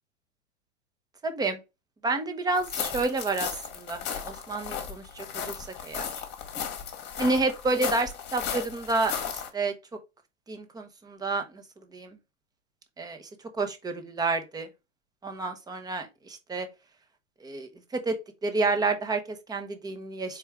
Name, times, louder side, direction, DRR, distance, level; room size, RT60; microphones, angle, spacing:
voice 1, 1.2-1.6 2.0-5.5 5.8-6.1 7.2-9.7 10.5-11.6 11.9-12.2 13.0-13.2 13.5-14.7 15.2-16.7 17.4-20.4, right 3 dB, 10° right, 0.7 m, -30 dB
sound 1, 2.6-9.5, left 7 dB, 30° left, 1.2 m, -35 dB
4.3 x 3.6 x 3.4 m
figure-of-eight pair, 105°, 36 cm